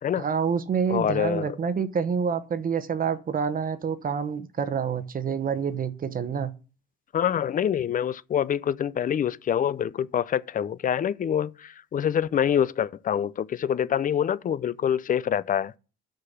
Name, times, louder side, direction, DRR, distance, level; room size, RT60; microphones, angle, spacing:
voice 1, 0.2-6.5, right 6 dB, 40° right, 1.0 m, -27 dB
voice 2, 0.9-1.6 7.1-15.7, left 9 dB, 40° left, 0.5 m, -26 dB
6.5 x 5.8 x 7.2 m
cardioid pair, 90°, 21 cm